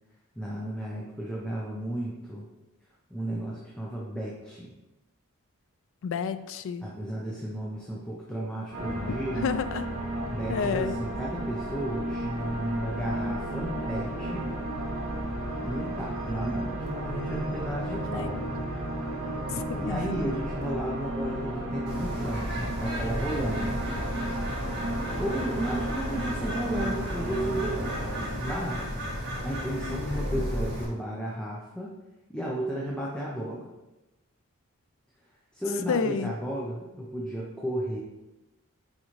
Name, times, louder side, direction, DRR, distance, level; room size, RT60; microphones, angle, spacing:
voice 1, 0.4-2.5 3.1-4.7 6.8-9.5 10.3-14.5 15.6-18.4 19.8-23.8 25.2-28.8 29.1-31.9 32.3-33.7 35.5-38.0, right 1 dB, 5° left, -4 dB, 0.7 m, -33 dB
voice 2, 6.0-6.9 9.4-9.9 10.5-11.0 18.1-18.4 19.5-20.2 29.9-30.4 35.9-36.3, left 5 dB, 60° left, 12 dB, 0.4 m, -30 dB
sound 1, 8.7-28.3, right 1 dB, 70° right, 2.0 m, -33 dB
Bird, 21.9-30.9, equal, 45° right, 1.9 m, -33 dB
6.4 x 4.7 x 3.1 m, 1.0 s
head